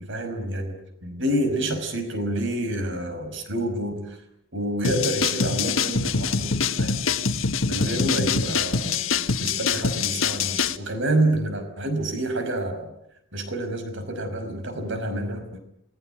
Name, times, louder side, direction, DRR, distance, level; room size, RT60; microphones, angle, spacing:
voice 1, 0.0-4.2 4.5-7.0 7.7-9.0 9.4-12.9 13.3-15.6, right 1 dB, 65° right, 8 dB, 5.5 m, -28 dB
sound 1, 4.8-10.8, left 5 dB, 85° left, 1.6 m, -24 dB
28.0 x 21.5 x 9.1 m, 0.75 s
head